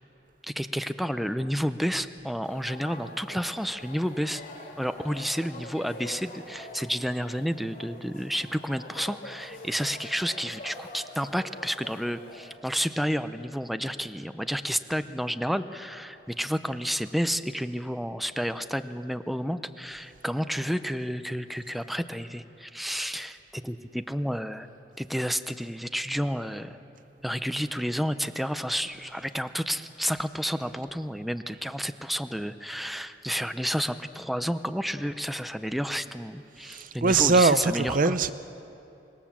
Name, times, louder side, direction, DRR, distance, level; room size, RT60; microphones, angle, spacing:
voice 1, 0.5-4.4 4.8-24.7 25.0-26.8 27.2-38.2, equal, ahead, 10 dB, 0.6 m, -31 dB
sound 1, 2.4-12.6, left 1 dB, 50° left, 3.1 m, -45 dB
voice 2, 36.7-38.3, right 4 dB, 50° right, 13 dB, 0.6 m, -22 dB
25.5 x 20.5 x 7.4 m, 2.8 s
head